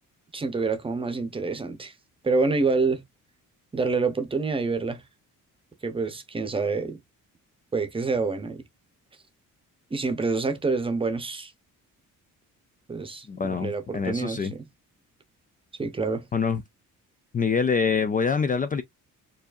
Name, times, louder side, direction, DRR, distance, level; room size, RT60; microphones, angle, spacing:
voice 1, 0.3-1.9 2.2-3.0 3.7-5.0 5.8-7.0 7.7-8.6 9.9-11.5 12.9-14.7 15.8-16.3, right 4 dB, 15° right, 0.8 m, -27 dB
voice 2, 13.3-14.5 16.3-16.6 17.3-18.8, left 5 dB, 25° left, 0.4 m, -25 dB
4.7 x 2.6 x 2.5 m
cardioid pair, 155°, 33 cm